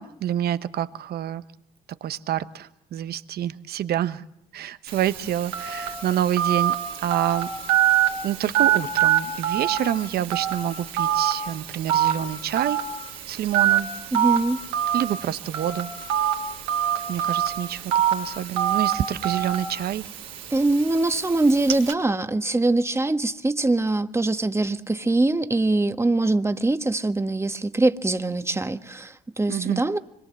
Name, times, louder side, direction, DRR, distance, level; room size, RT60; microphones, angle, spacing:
voice 1, 0.0-1.4 2.0-4.2 4.5-7.5 8.2-12.8 13.3-13.9 14.9-15.9 17.1-20.1 29.5-29.8, right 11 dB, 65° right, 1.1 m, -27 dB
Telephone, 4.9-21.9, right 10 dB, 85° right, 3.2 m, -26 dB
voice 2, 14.1-14.6 20.5-30.0, right 2 dB, 15° right, 1.5 m, -23 dB
26.0 x 22.0 x 7.5 m
hypercardioid pair, 60°, 18 cm